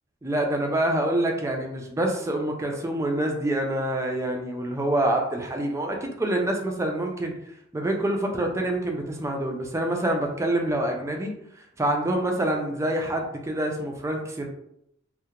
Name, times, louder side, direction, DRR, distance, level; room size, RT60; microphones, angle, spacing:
voice 1, 0.2-7.3 7.7-11.3 11.8-14.5, right 1 dB, 15° right, 2 dB, 0.3 m, -26 dB
2.3 x 2.1 x 2.8 m, 0.76 s
head